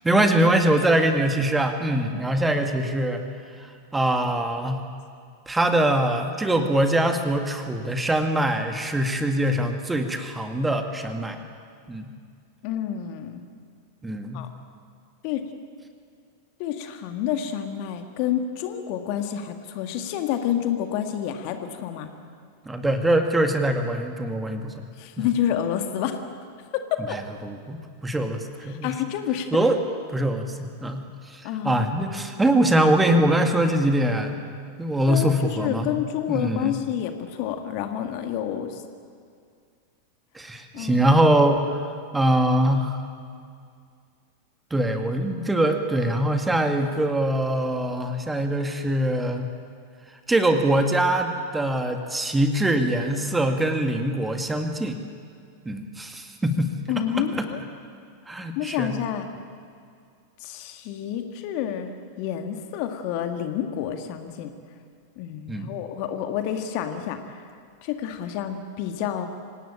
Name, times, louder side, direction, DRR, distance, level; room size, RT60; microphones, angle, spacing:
voice 1, 0.0-3.2 3.6-4.8 5.5-11.4 11.9-12.1 14.0-14.4 22.7-24.8 25.2-25.3 27.1-28.9 29.5-29.8 30.1-34.4 34.8-35.9 36.3-36.8 40.3-41.8 42.1-43.0 44.7-49.5 50.3-55.0 55.7-56.7 57.1-57.2 58.3-59.0 65.5-65.7, right 1 dB, 10° right, 6 dB, 2.0 m, -23 dB
voice 2, 12.6-13.4 14.3-14.5 15.2-15.4 16.6-22.1 25.0-26.2 26.7-27.2 28.7-29.5 31.4-32.2 35.1-38.8 40.7-41.1 56.9-57.6 58.6-59.3 60.4-64.5 65.2-67.4 67.8-69.3, left 10 dB, 45° left, 7 dB, 1.9 m, -29 dB
26.0 x 18.0 x 8.8 m, 2.2 s
figure-of-eight pair, 90°, 0 cm